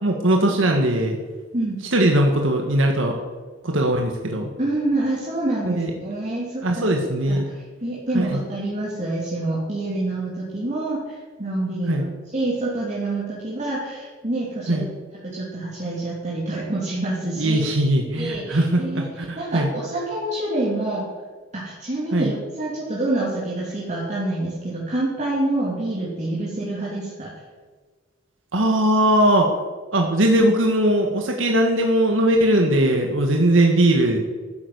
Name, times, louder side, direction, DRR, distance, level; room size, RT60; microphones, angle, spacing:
voice 1, 0.0-1.2 1.9-3.2 3.6-4.5 5.6-5.9 6.6-7.5 8.1-8.4 11.9-12.0 14.7-14.9 17.4-19.7 22.1-22.3 28.5-29.5 29.9-34.2, right 1 dB, 85° right, 2 dB, 1.7 m, -19 dB
voice 2, 4.6-6.9 7.3-12.0 12.3-14.9 15.3-17.6 18.1-19.1 19.3-21.1 21.5-27.3, right 2 dB, 40° right, -6 dB, 3.2 m, -27 dB
13.0 x 10.0 x 8.0 m, 1.4 s
head